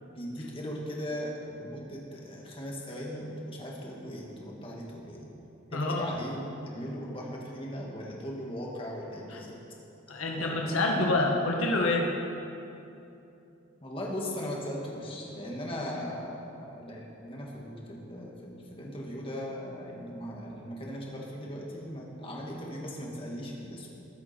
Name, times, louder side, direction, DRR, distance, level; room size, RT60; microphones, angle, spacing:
voice 1, 0.1-5.3 5.7-9.6 10.3-11.0 13.8-23.9, equal, 25° left, -2 dB, 2.1 m, -38 dB
voice 2, 5.7-6.1 9.3-9.4 10.1-12.1, left 2 dB, 85° left, 0 dB, 1.5 m, -27 dB
20.5 x 8.6 x 4.5 m, 2.8 s
head